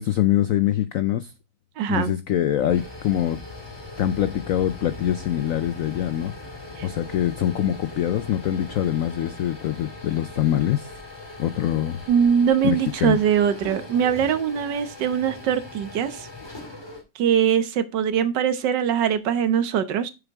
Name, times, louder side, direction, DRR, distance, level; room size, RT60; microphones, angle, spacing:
voice 1, 0.0-1.3 1.9-3.4 4.0-10.9 11.4-12.0 12.6-13.2, left 11 dB, 80° left, 0.7 m, -24 dB
voice 2, 1.8-2.1 6.8-6.9 12.1-16.3 17.2-20.1, right 8 dB, 70° right, 1.5 m, -22 dB
sound 1, 2.6-17.0, left 2 dB, 15° left, 2.1 m, -40 dB
7.3 x 6.8 x 3.5 m
omnidirectional pair, 2.0 m